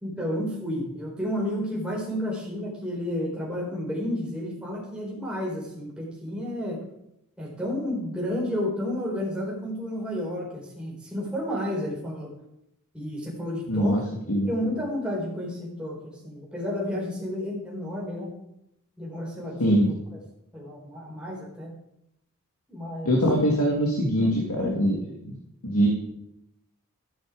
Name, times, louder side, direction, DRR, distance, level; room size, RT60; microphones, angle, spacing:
voice 1, 0.0-6.8 7.4-12.3 12.9-14.0 14.4-18.3 19.0-19.8 20.5-21.7 22.7-23.2 24.2-24.8, left 1 dB, 5° right, -4 dB, 4.1 m, -31 dB
voice 2, 13.7-14.0 14.3-14.5 19.6-19.9 23.1-25.0 25.2-25.4 25.6-25.9, equal, 90° left, 1 dB, 2.2 m, -22 dB
13.5 x 10.0 x 4.9 m, 0.81 s
head